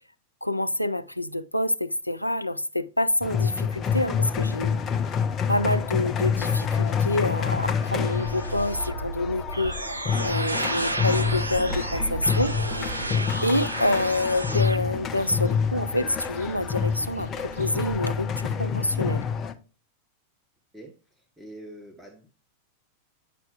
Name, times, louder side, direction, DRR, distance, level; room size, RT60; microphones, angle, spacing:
voice 1, 0.4-4.8 5.5-9.8 10.2-12.5 13.4-19.2, left 1 dB, 90° left, 0.3 m, -27 dB
sound 1, 3.2-19.5, left 6 dB, 25° left, 0.6 m, -28 dB
sound 2, 7.1-14.8, right 2 dB, 80° right, 0.4 m, -32 dB
sound 3, 10.8-18.0, right 2 dB, 55° right, 1.9 m, -43 dB
voice 2, 21.4-22.3, right 1 dB, 5° right, 0.9 m, -44 dB
8.9 x 5.8 x 2.3 m
figure-of-eight pair, 90°, 0 cm